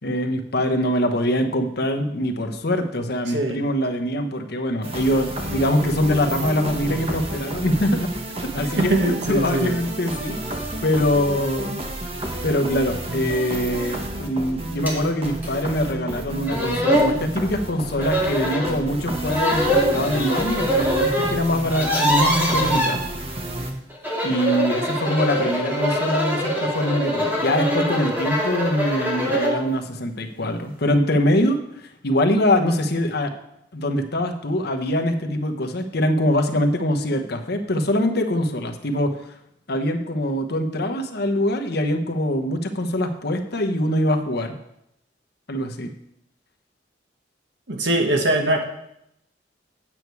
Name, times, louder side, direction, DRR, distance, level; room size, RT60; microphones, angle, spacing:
voice 1, 0.0-8.1 8.5-10.4 10.8-11.8 12.4-23.0 24.2-33.3 33.7-39.3 39.7-44.6 45.5-45.9, left 1 dB, 60° left, 5 dB, 1.1 m, -23 dB
voice 2, 3.3-3.6 8.7-9.8 47.7-48.6, right 1 dB, 70° right, 3 dB, 1.6 m, -22 dB
sound 1, 4.8-23.7, right 1 dB, 35° right, 1.3 m, -31 dB
sound 2, 14.9-15.0 15.4-15.5 16.2-16.3 16.5-17.1 18.0-18.7 19.3-21.3 21.6-22.9 23.9-29.6, equal, 10° right, 2.4 m, -23 dB
9.0 x 8.3 x 4.7 m, 0.79 s
head